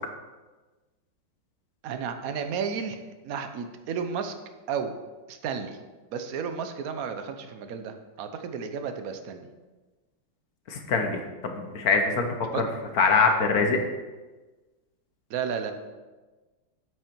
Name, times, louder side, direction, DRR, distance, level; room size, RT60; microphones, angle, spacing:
voice 1, 1.8-4.3 4.7-4.9 5.3-5.8 6.1-9.5 12.5-12.6 15.3-15.7, right 6 dB, 60° right, 8 dB, 1.0 m, -32 dB
voice 2, 10.7-12.3 12.5-12.7 12.9-13.8, left 4 dB, 55° left, 4 dB, 1.2 m, -23 dB
8.2 x 7.9 x 4.5 m, 1.2 s
omnidirectional pair, 2.2 m